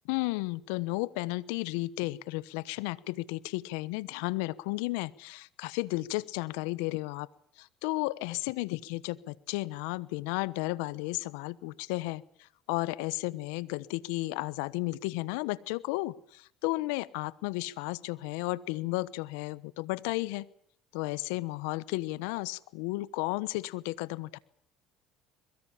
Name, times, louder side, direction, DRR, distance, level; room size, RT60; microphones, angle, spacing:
voice 1, 0.1-7.3 7.6-20.4 20.9-24.4, left 21 dB, 80° left, 19 dB, 1.1 m, -33 dB
23.5 x 22.0 x 7.3 m, 0.64 s
supercardioid pair, 75°, 0 cm